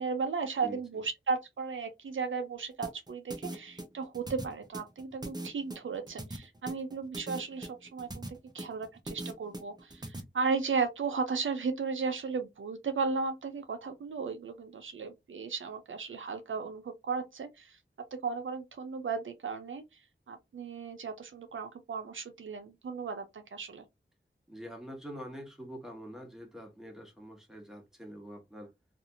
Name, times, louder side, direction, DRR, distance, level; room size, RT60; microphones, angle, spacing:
voice 1, 0.0-17.8 18.1-19.8 20.3-23.9, right 5 dB, 80° right, 0.5 m, -35 dB
sound 1, 2.8-10.2, right 1 dB, 20° right, 0.6 m, -41 dB
voice 2, 24.5-28.7, equal, ahead, 1.2 m, -45 dB
2.7 x 2.4 x 2.7 m
wide cardioid pair, 60°, 20 cm